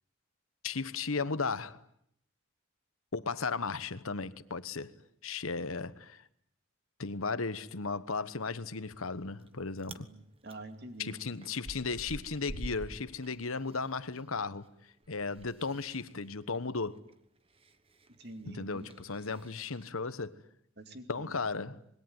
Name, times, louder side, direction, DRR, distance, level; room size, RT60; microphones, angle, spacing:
voice 1, 0.6-1.8 3.1-4.9 5.2-6.2 7.0-10.1 11.0-14.7 15.1-17.0 18.4-20.3 21.1-21.8, left 4 dB, 85° left, 1.2 m, -35 dB
Chewing mastication, 9.0-9.5 9.8-10.1 10.5-14.2 14.5-19.9, right 1 dB, 25° right, 1.2 m, -48 dB
voice 2, 10.0-11.2 18.2-18.9 20.8-21.3, right 2 dB, 50° right, 2.7 m, -47 dB
26.5 x 21.5 x 9.6 m
head